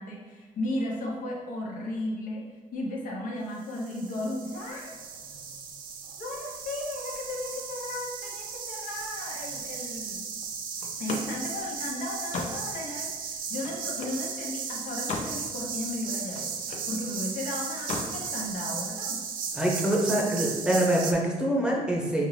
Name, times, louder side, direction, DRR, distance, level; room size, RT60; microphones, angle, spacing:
voice 1, 0.0-2.5 2.7-4.9 6.2-10.2 11.0-16.5 16.9-19.2, left 1 dB, 75° left, -1 dB, 0.9 m, -35 dB
sound 1, 3.6-21.1, right 6 dB, 80° right, 0.5 m, -36 dB
Slam, 10.8-14.3 14.7-15.4 15.8-16.9 17.7-18.2, left 3 dB, 55° left, 0.6 m, -37 dB
voice 2, 19.5-22.2, right 1 dB, 5° right, -3 dB, 0.8 m, -25 dB
5.4 x 2.5 x 3.2 m, 1.4 s
cardioid pair, 135°, 14 cm